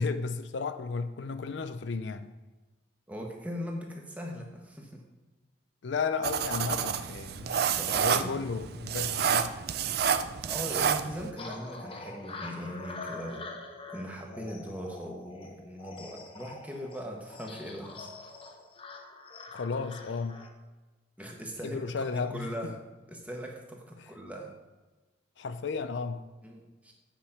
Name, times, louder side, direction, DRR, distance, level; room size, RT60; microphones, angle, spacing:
voice 1, 0.0-2.3 5.8-7.5 7.9-9.5 19.5-20.4 21.6-22.7 25.4-26.2, left 4 dB, 70° left, 0.4 m, -33 dB
voice 2, 3.1-5.1 7.8-8.4 9.2-9.4 10.4-13.5 13.9-18.3 21.2-21.8 22.1-22.8 23.1-24.5 26.4-26.9, equal, 10° right, 1.2 m, -40 dB
sound 1, 6.2-11.3, right 7 dB, 55° right, 0.4 m, -29 dB
sound 2, 11.4-20.5, left 3 dB, 30° left, 0.8 m, -45 dB
8.3 x 5.1 x 5.8 m
head